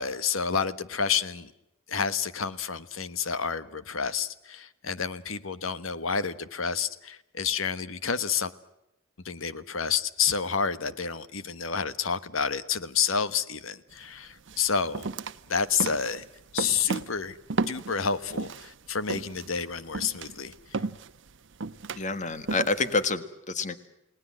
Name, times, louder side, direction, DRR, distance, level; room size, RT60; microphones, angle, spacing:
voice 1, 0.0-1.5 1.9-8.5 9.2-15.1 15.5-16.2 16.5-17.4 17.7-20.5, left 6 dB, 75° left, 14 dB, 1.3 m, -29 dB
sound 1, 13.9-14.1 14.5-18.7 19.1-23.1, right 4 dB, 60° right, 0.9 m, -34 dB
voice 2, 22.0-23.8, left 3 dB, 35° left, 12 dB, 1.6 m, -28 dB
30.0 x 18.5 x 7.5 m, 0.87 s
head